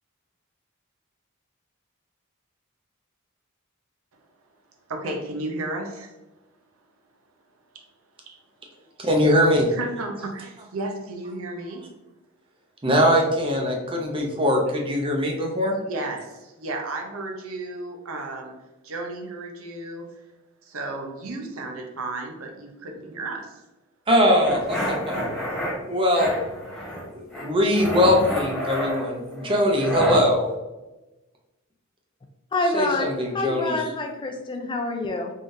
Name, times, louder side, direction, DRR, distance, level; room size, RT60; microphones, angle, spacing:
voice 1, 4.9-6.1 7.7-7.8 8.2-8.4 9.7-11.9 15.7-18.5 18.8-20.1 20.6-23.6, right 2 dB, 75° right, 3 dB, 0.7 m, -33 dB
voice 2, 9.0-9.7 12.8-15.7 24.1-25.2 25.9-26.4 26.9-30.5 32.6-33.9, equal, 25° right, 1 dB, 0.7 m, -21 dB
sound 1, 24.4-25.7 26.1-27.0 27.3-30.2, equal, ahead, 1.5 m, -28 dB
voice 3, 32.5-35.3, left 2 dB, 20° left, 4 dB, 0.3 m, -27 dB
3.6 x 3.5 x 2.6 m, 1.0 s
head